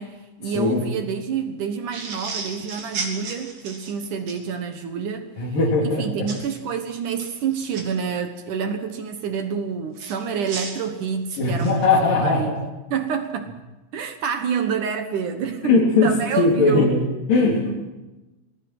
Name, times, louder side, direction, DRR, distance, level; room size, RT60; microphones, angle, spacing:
voice 1, 0.0-5.6 5.8-12.6 12.9-13.6 13.9-15.8 16.0-17.0, right 6 dB, 70° right, 7 dB, 2.0 m, -28 dB
sound 1, 1.9-4.4 6.3-6.5 7.0-7.8 10.0-11.8, right 4 dB, 45° right, 4.4 m, -34 dB
voice 2, 5.4-6.3 11.4-12.6 15.6-16.1 16.4-17.7, left 3 dB, 50° left, -5 dB, 4.8 m, -19 dB
27.0 x 20.5 x 6.1 m, 1.1 s
omnidirectional pair, 5.3 m